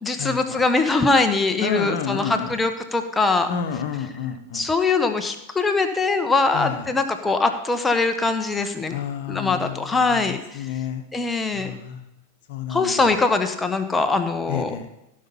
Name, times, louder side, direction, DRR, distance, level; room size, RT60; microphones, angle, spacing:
voice 1, 0.0-3.5 4.5-8.9 9.3-10.7 11.1-11.7 12.7-14.7, left 3 dB, 10° left, 7 dB, 1.1 m, -22 dB
voice 2, 1.6-2.5 3.5-4.7 6.5-6.9 8.9-11.0 11.5-12.0 12.5-13.0 14.5-14.9, left 8 dB, 50° left, 8 dB, 1.2 m, -30 dB
16.0 x 5.5 x 5.6 m, 0.90 s
figure-of-eight pair, 90°, 0 cm